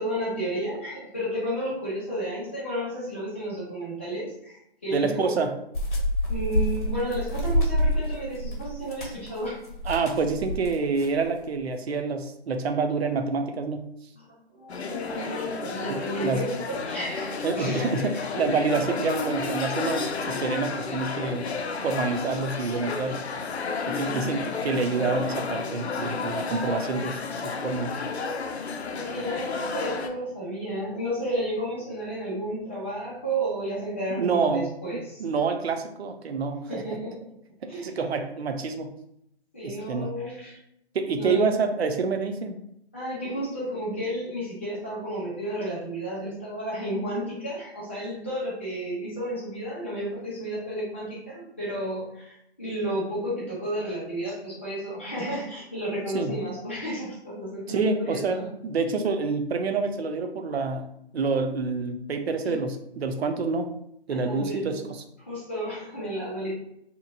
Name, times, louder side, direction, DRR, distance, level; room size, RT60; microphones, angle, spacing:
voice 1, 0.0-5.4 6.3-9.6 14.1-18.5 19.4-19.5 24.0-24.4 28.9-35.2 36.7-37.1 37.7-37.9 39.5-40.6 41.2-41.5 42.9-58.4 62.4-62.7 64.1-64.9 65.3-66.5, right 1 dB, 10° left, -9 dB, 0.5 m, -32 dB
voice 2, 4.9-5.5 9.9-13.9 15.9-16.4 17.4-21.5 21.8-23.2 23.9-28.0 34.2-34.7 35.2-36.8 37.6-38.9 39.6-40.2 40.9-42.6 56.1-56.4 57.7-63.7 64.1-64.8, right 4 dB, 70° right, 6 dB, 0.5 m, -27 dB
sound 1, 5.7-11.2, equal, 50° left, 0.8 m, -27 dB
sound 2, 14.7-30.1, left 4 dB, 80° left, 0.5 m, -32 dB
2.8 x 2.1 x 2.6 m, 0.76 s
figure-of-eight pair, 155°, 32 cm